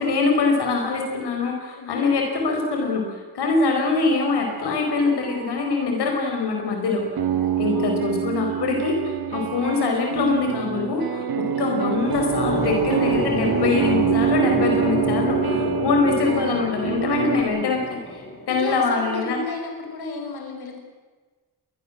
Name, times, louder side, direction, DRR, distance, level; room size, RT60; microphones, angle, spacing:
voice 1, 0.0-7.2 7.6-19.4, left 4 dB, 85° left, 2 dB, 5.3 m, -23 dB
sound 1, 4.0-5.9 7.2-8.2, right 5 dB, 85° right, 7.5 m, -41 dB
sound 2, 7.0-17.4, right 9 dB, 65° right, 2.1 m, -25 dB
voice 2, 7.2-8.0 11.4-11.6 18.5-20.8, left 3 dB, 70° left, 2 dB, 5.4 m, -34 dB
sound 3, 11.6-18.7, left 2 dB, 35° left, 5.2 m, -29 dB
25.5 x 20.5 x 7.6 m, 1.4 s
cardioid pair, 105°, 39 cm